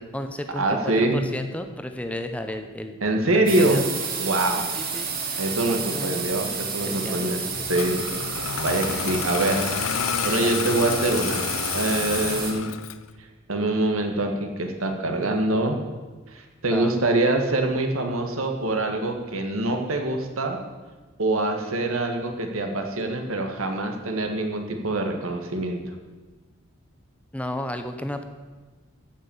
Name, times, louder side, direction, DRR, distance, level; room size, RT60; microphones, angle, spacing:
voice 1, 0.0-2.9 3.3-3.9 4.5-5.1 5.9-6.2 6.5-7.3 7.7-7.8 10.4-10.5 16.7-17.1 27.3-28.2, left 1 dB, 5° left, 7 dB, 0.7 m, -33 dB
voice 2, 0.6-1.2 3.0-3.8 4.2-4.7 5.4-8.0 8.6-9.7 10.2-11.4 11.7-12.7 13.5-15.8 16.3-20.6 21.2-25.8, right 2 dB, 90° right, 4 dB, 1.7 m, -24 dB
sound 1, 3.5-12.5, right 5 dB, 45° right, 2.0 m, -31 dB
Engine starting, 7.7-13.1, left 7 dB, 75° left, 0.6 m, -29 dB
15.0 x 5.9 x 7.0 m, 1.3 s
head